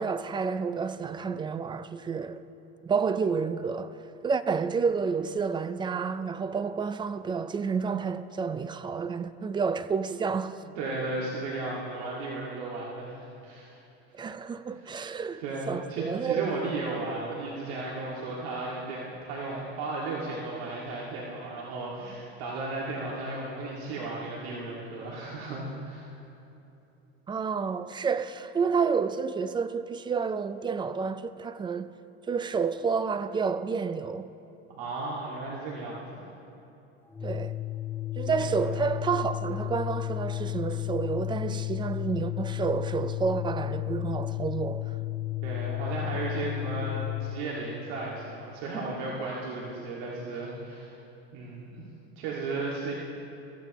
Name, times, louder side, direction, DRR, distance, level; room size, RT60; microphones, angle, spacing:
voice 1, 0.0-2.4 2.8-4.0 4.2-10.6 14.1-16.5 27.3-32.0 32.2-34.3 37.2-37.6 38.2-45.0, right 5 dB, 15° right, 0.3 m, -30 dB
voice 2, 10.6-13.8 14.7-14.9 15.4-26.1 34.7-36.3 38.3-38.7 45.4-50.9 51.3-51.8 52.2-52.9, right 3 dB, 85° right, 2.2 m, -35 dB
Organ, 37.1-47.4, left 16 dB, 5° left, 0.9 m, -33 dB
23.0 x 15.0 x 3.1 m
supercardioid pair, 130°, 31 cm